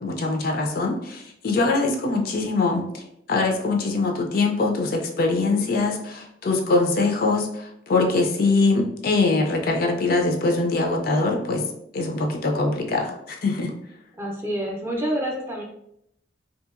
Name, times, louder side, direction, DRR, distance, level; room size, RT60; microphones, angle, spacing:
voice 1, 0.0-3.0 3.3-11.6 11.9-13.7, left 3 dB, 50° left, 2 dB, 0.4 m, -23 dB
voice 2, 14.2-15.6, equal, 15° right, -1 dB, 0.4 m, -27 dB
2.7 x 2.6 x 2.4 m, 0.75 s
head